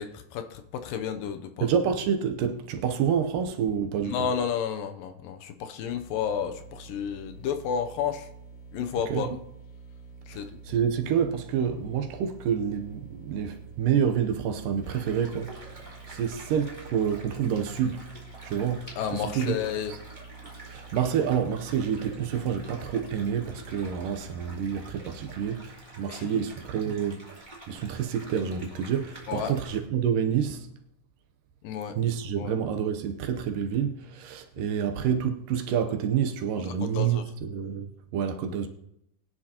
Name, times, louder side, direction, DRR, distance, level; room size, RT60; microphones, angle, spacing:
voice 1, 0.0-1.7 4.0-8.3 8.7-9.4 10.3-10.5 19.0-19.9 26.1-26.3 29.3-29.5 31.6-32.0 32.4-32.5 34.6-34.7 36.8-37.2, left 7 dB, 80° left, 2.4 m, -31 dB
voice 2, 1.6-4.3 9.1-9.4 10.3-18.1 18.4-19.6 20.4-30.7 32.0-38.7, right 8 dB, 75° right, 2.3 m, -28 dB
sound 1, 5.9-25.6, right 4 dB, 65° left, 2.6 m, -48 dB
sound 2, 14.8-29.8, right 1 dB, 15° right, 2.2 m, -48 dB
20.5 x 10.0 x 2.9 m
omnidirectional pair, 4.1 m